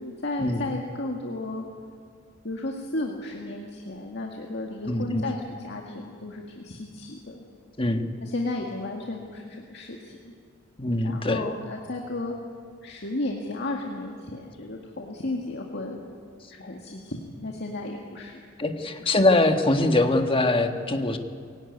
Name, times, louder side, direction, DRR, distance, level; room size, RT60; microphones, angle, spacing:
voice 1, 0.0-1.6 2.4-7.4 8.2-10.3 11.0-12.3 12.8-16.1 16.5-18.4 18.8-19.1, left 2 dB, 60° left, 0 dB, 1.9 m, -34 dB
voice 2, 4.9-5.2 7.8-8.1 10.8-11.4 18.6-21.2, left 2 dB, 30° left, 6 dB, 1.6 m, -23 dB
22.5 x 17.5 x 9.6 m, 2.1 s
head